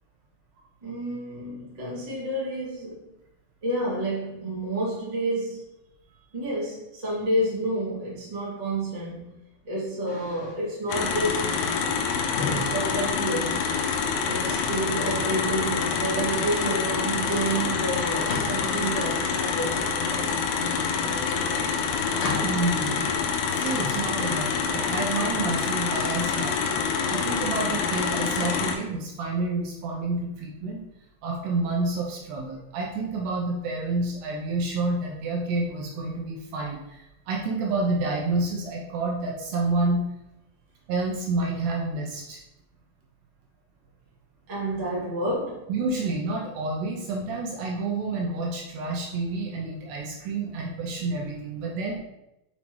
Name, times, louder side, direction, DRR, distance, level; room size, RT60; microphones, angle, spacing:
voice 1, 0.8-3.0 3.6-5.7 6.3-9.3 9.6-11.5 12.7-13.7 14.3-21.8 44.5-45.7, right 1 dB, 25° right, -7 dB, 0.8 m, -30 dB
sound 1, 10.1-10.6 11.4-12.7 13.8-15.1 16.5-16.9 17.2-17.3 18.3-18.6 19.6-20.6 21.6-22.7 23.6-24.8 25.7-26.5, left 3 dB, 60° left, 1.5 m, -36 dB
sound 2, 10.9-28.8, left 5 dB, 80° left, 2.4 m, -27 dB
voice 2, 22.4-23.2 23.5-30.8 31.2-40.0 40.9-42.4 45.7-52.0, right 3 dB, 75° right, -1 dB, 2.7 m, -29 dB
6.9 x 5.7 x 3.2 m, 0.90 s
omnidirectional pair, 5.5 m